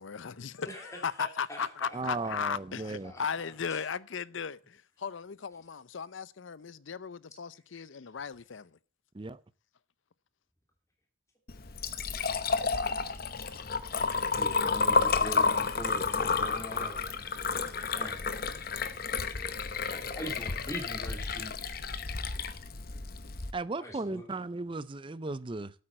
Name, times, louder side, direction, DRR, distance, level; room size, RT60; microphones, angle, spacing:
voice 1, 0.0-8.7, left 6 dB, 70° left, 0.6 m, -37 dB
voice 2, 0.6-2.5 2.8-3.9 14.3-17.2 17.6-18.3 18.9-19.0 19.9-21.5 23.8-24.4, equal, 15° left, 2.8 m, -43 dB
voice 3, 1.9-3.1 9.1-9.4 17.5-17.6 23.5-25.7, right 3 dB, 25° right, 0.5 m, -36 dB
Liquid, 11.5-23.5, left 4 dB, 45° left, 0.9 m, -31 dB
8.8 x 8.6 x 7.6 m
head